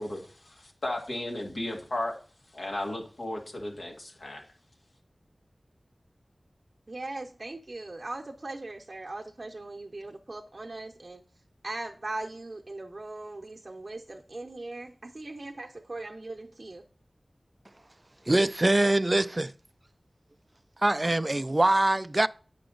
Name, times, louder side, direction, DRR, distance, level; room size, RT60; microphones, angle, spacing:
voice 1, 0.0-2.1 2.5-4.4, left 1 dB, 85° left, 2.0 m, -35 dB
voice 2, 6.9-11.2 11.6-16.9, right 2 dB, 55° right, 0.7 m, -39 dB
voice 3, 18.3-19.5 20.8-22.3, right 1 dB, 35° right, 0.3 m, -23 dB
8.7 x 5.8 x 3.9 m
wide cardioid pair, 55°, 0 cm